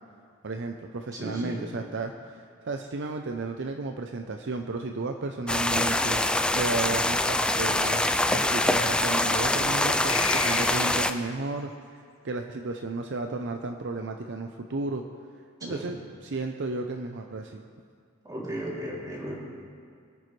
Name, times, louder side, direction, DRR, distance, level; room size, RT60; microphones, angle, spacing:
voice 1, 0.4-2.4 2.7-8.0 8.3-15.0 15.6-17.6, right 3 dB, 60° right, 4 dB, 0.6 m, -33 dB
voice 2, 1.1-1.6 15.6-15.9 18.2-19.3, equal, 20° right, -5 dB, 3.0 m, -35 dB
sound 1, 5.5-11.1, left 1 dB, 5° left, 0.4 m, -24 dB
sound 2, 10.1-11.3, left 5 dB, 80° left, 1.4 m, -33 dB
24.0 x 9.3 x 3.3 m, 2.3 s
head